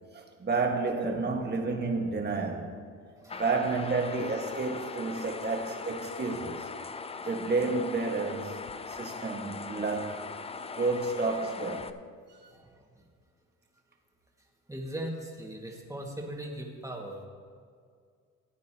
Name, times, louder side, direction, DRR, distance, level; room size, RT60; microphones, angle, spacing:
voice 1, 0.1-2.7 3.3-6.7 7.2-8.6 8.9-10.3 10.7-11.9, right 3 dB, 35° right, 1.7 m, -30 dB
voice 2, 1.0-1.5 3.2-3.4 5.2-5.3 12.5-13.1 14.7-17.3, right 1 dB, 10° right, 2.0 m, -40 dB
sound 1, 3.3-11.9, left 4 dB, 20° left, 0.4 m, -40 dB
17.5 x 9.1 x 3.0 m
cardioid pair, 90°, 30 cm